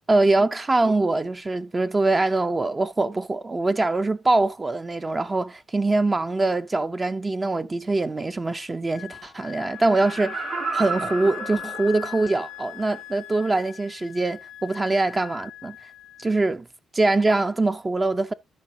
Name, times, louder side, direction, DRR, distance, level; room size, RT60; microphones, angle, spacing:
voice 1, 0.1-10.4 10.7-15.9 16.2-16.7 16.9-18.3, right 2 dB, 25° right, 0.5 m, -23 dB
Wind instrument woodwind instrument, 8.9-16.4, left 14 dB, 90° left, 0.7 m, -40 dB
Laughter, 9.8-12.4 12.9-13.0, right 5 dB, 55° right, 5.8 m, -32 dB
13.0 x 5.5 x 2.7 m
cardioid pair, 90°, 0 cm